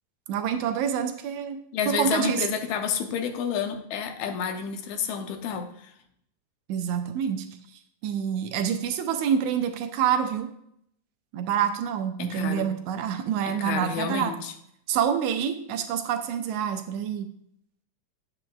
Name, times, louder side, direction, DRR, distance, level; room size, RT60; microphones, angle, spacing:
voice 1, 0.3-1.6 1.9-2.4 6.7-7.5 8.0-10.5 11.3-14.3 14.9-17.3, right 8 dB, 80° right, 6 dB, 2.0 m, -27 dB
voice 2, 1.7-5.9 12.2-12.7 13.5-14.5, left 7 dB, 80° left, 7 dB, 2.0 m, -30 dB
9.1 x 7.9 x 2.3 m, 0.71 s
omnidirectional pair, 3.4 m